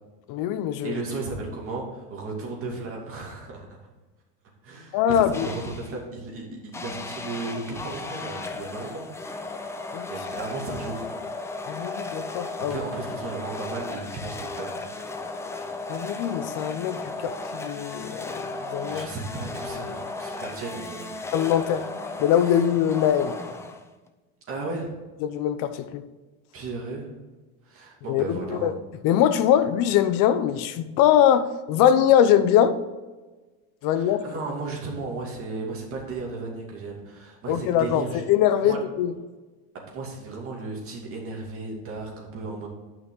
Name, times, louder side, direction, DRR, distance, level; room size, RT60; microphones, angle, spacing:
voice 1, 0.3-1.0 4.9-5.5 9.9-10.1 11.7-12.8 15.9-18.5 18.7-19.1 21.3-21.8 22.2-23.3 25.2-26.0 28.1-28.7 29.0-32.7 33.8-34.2 37.5-39.1, left 10 dB, 50° left, 12 dB, 0.8 m, -22 dB
voice 2, 0.8-3.8 4.6-9.1 9.4-9.6 10.1-11.0 12.6-14.8 18.9-21.2 24.5-24.9 26.5-27.1 27.6-28.7 33.9-38.2 38.6-38.8 39.7-42.7, right 3 dB, 35° right, -1 dB, 2.5 m, -35 dB
sound 1, 5.3-6.0 6.7-24.1, left 3 dB, 5° left, 0.3 m, -35 dB
10.5 x 6.0 x 3.9 m, 1.2 s
cardioid pair, 145°, 41 cm